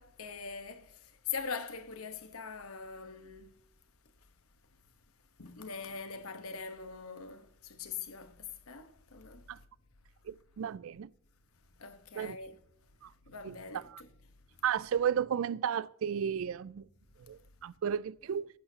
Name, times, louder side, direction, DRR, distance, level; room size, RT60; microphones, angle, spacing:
voice 1, 0.0-3.6 5.4-9.7 11.7-12.6 13.0-14.1 17.2-17.4, left 5 dB, 75° left, 1.2 m, -43 dB
voice 2, 10.3-11.1 12.2-12.4 13.0-13.1 13.4-13.6 13.9-14.0 14.6-16.8 17.3-18.5, right 8 dB, 65° right, 0.3 m, -33 dB
15.5 x 11.5 x 2.8 m
head